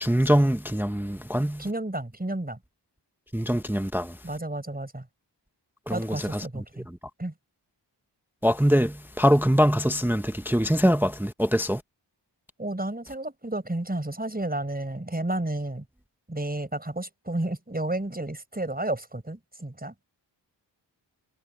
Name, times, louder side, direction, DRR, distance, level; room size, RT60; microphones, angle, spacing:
voice 1, 0.0-1.6 3.3-4.1 5.9-6.1 8.4-11.8, equal, 5° right, 0.7 m, -23 dB
voice 2, 1.6-2.6 4.2-5.1 5.9-6.9 7.2-7.3 12.6-15.9 16.3-20.0, right 1 dB, 20° right, 5.7 m, -31 dB
wide cardioid pair, 65°, 44 cm